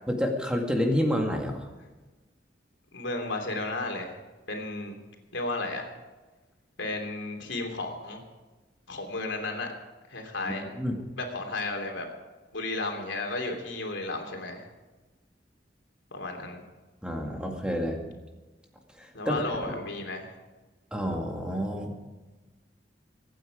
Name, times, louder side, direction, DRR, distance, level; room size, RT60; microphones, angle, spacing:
voice 1, 0.1-1.7 10.5-11.0 17.0-18.0 19.0-19.3 19.7-19.8 20.9-21.9, equal, 5° right, 1 dB, 2.1 m, -29 dB
voice 2, 2.9-4.2 4.5-5.0 5.3-5.9 6.8-8.2 8.9-9.7 10.1-10.6 11.2-12.1 12.5-14.6 16.1-16.7 19.1-20.3, left 2 dB, 85° left, 2 dB, 3.1 m, -33 dB
23.5 x 9.3 x 5.0 m, 1.2 s
head